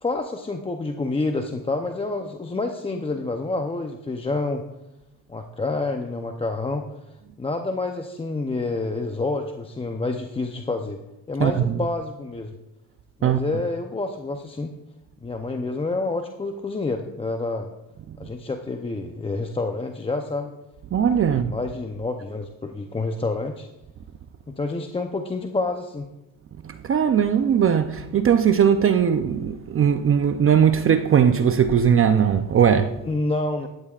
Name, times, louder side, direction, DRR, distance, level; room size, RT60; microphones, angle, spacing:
voice 1, 0.0-4.6 5.3-11.0 11.3-12.6 13.2-14.7 15.2-17.7 18.2-20.5 21.3-23.7 24.5-26.1 33.0-33.7, left 3 dB, 15° left, 0.7 m, -28 dB
voice 2, 20.9-21.5 26.7-32.9, right 8 dB, 35° right, 0.6 m, -19 dB
15.0 x 12.0 x 2.5 m
cardioid pair, 110°, 40 cm